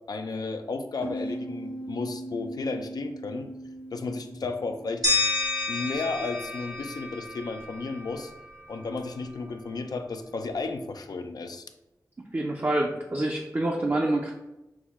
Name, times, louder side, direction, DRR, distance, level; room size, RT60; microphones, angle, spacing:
voice 1, 0.1-3.5 3.9-5.1 5.7-8.3 8.7-11.7, left 3 dB, 75° left, 7 dB, 0.4 m, -33 dB
sound 1, 1.0-6.3, right 1 dB, 25° left, 0.6 m, -40 dB
sound 2, 5.0-8.0, left 2 dB, 70° right, 1.5 m, -29 dB
voice 2, 12.3-14.3, right 1 dB, 35° right, 0 dB, 0.5 m, -26 dB
6.1 x 2.1 x 3.5 m, 0.96 s
wide cardioid pair, 60°, 7 cm